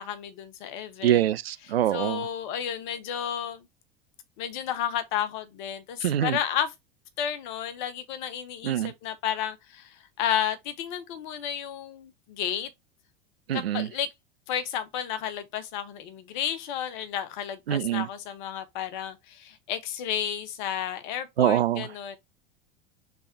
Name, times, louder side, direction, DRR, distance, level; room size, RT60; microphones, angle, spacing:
voice 1, 0.0-1.2 1.9-3.7 4.4-6.7 7.2-12.7 13.5-14.1 14.5-22.2, left 9 dB, 50° left, 0.9 m, -32 dB
voice 2, 1.0-2.3 6.0-6.4 8.6-8.9 13.5-13.9 17.7-18.1 21.4-21.9, right 11 dB, 75° right, 0.4 m, -24 dB
3.4 x 3.3 x 4.2 m
figure-of-eight pair, 80°, 30 cm